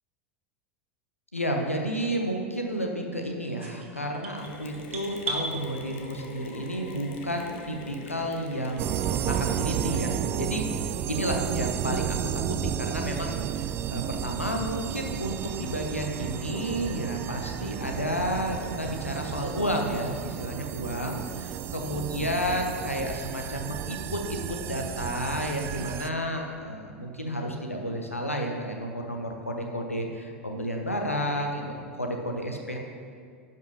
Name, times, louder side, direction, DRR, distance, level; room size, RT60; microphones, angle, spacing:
voice 1, 1.3-32.8, equal, 85° left, 2 dB, 1.0 m, -31 dB
sound 1, 3.6-5.5, right 3 dB, 70° right, 1.5 m, -35 dB
Mechanisms, 4.4-10.6, left 3 dB, 55° left, 1.1 m, -44 dB
sound 2, 8.8-26.1, right 9 dB, 35° right, 0.4 m, -32 dB
10.5 x 5.5 x 5.4 m, 2.2 s
figure-of-eight pair, 85°, 7 cm